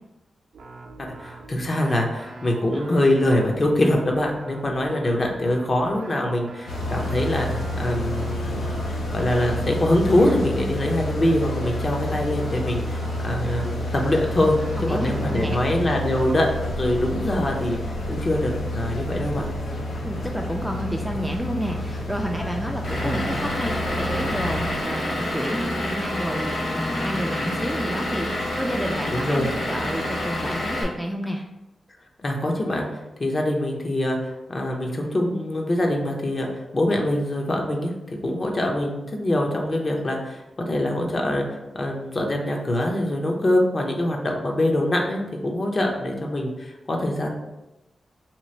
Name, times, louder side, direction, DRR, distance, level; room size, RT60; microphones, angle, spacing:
sound 1, 0.5-10.4 12.4-15.5, right 2 dB, 85° right, 0.5 m, -43 dB
voice 1, 1.0-17.8 18.1-19.5 23.0-23.2 29.1-29.5 32.2-32.9 33.2-47.3, left 1 dB, 40° left, 1 dB, 0.7 m, -24 dB
sound 2, 6.7-24.8, left 1 dB, 90° left, 0.6 m, -29 dB
voice 2, 14.8-15.6 20.0-31.4, equal, ahead, 1 dB, 0.3 m, -30 dB
Vehicle / Engine, 22.8-30.8, left 1 dB, 75° left, 1.0 m, -28 dB
3.0 x 2.4 x 4.2 m, 0.97 s
cardioid pair, 80°, 0 cm